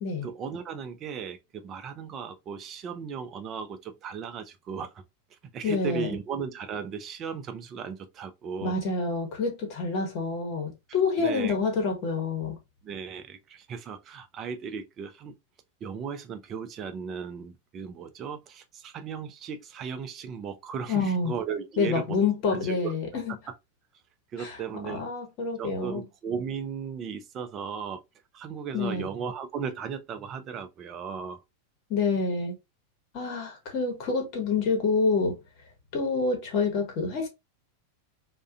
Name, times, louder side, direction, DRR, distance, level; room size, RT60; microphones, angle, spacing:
voice 1, 0.2-5.0 5.5-8.7 11.2-11.5 12.8-15.3 15.8-22.2 22.5-22.9 24.3-25.0 25.6-28.0 28.3-31.4, right 6 dB, 30° right, 0.4 m, -36 dB
voice 2, 5.6-6.2 8.6-12.5 20.9-21.3 21.8-23.4 24.4-24.6 24.8-26.0 28.7-29.1 31.9-32.6 33.1-35.4 35.9-37.3, left 4 dB, 40° left, 1.0 m, -27 dB
2.3 x 2.1 x 2.5 m
figure-of-eight pair, 90°, 0 cm